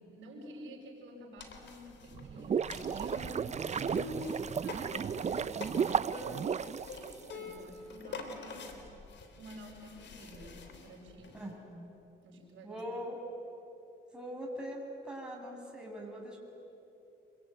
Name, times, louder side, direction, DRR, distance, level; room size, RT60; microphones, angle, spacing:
voice 1, 0.1-8.9 9.4-11.4 12.2-12.8, right 1 dB, 80° right, -1 dB, 7.0 m, -51 dB
sound 1, 1.4-11.5, left 3 dB, 65° left, 3.5 m, -46 dB
sound 2, 2.1-7.5, right 7 dB, 35° right, 0.6 m, -33 dB
voice 2, 11.3-11.9 12.6-13.2 14.1-16.4, equal, 5° right, -2 dB, 7.3 m, -42 dB
27.5 x 23.0 x 9.2 m, 2.9 s
cardioid pair, 90°, 20 cm